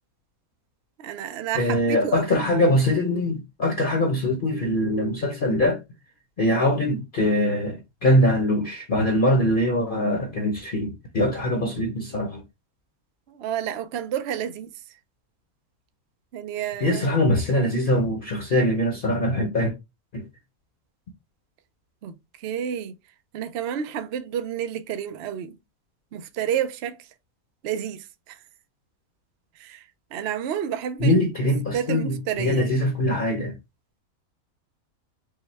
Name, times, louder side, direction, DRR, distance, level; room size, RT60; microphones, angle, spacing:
voice 1, 1.0-2.3 13.3-15.0 16.3-17.1 22.0-22.9 23.3-25.6 26.1-27.1 27.6-28.4 29.6-31.2 31.7-32.7, right 9 dB, 65° right, 0.7 m, -30 dB
voice 2, 1.6-5.8 6.4-12.4 16.8-19.7 20.1-20.2 31.0-33.6, left 1 dB, 45° left, 0.8 m, -22 dB
5.4 x 2.2 x 3.2 m
omnidirectional pair, 1.4 m